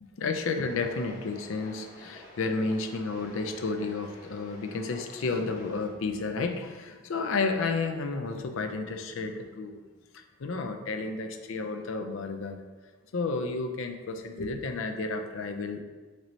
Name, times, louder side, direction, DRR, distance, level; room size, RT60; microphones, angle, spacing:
voice 1, 0.2-9.8 10.1-12.6 13.1-15.8, left 3 dB, 60° left, 6 dB, 0.4 m, -31 dB
sound 1, 0.6-5.9, left 1 dB, 40° left, 1.2 m, -50 dB
6.0 x 2.7 x 3.1 m, 1.3 s
head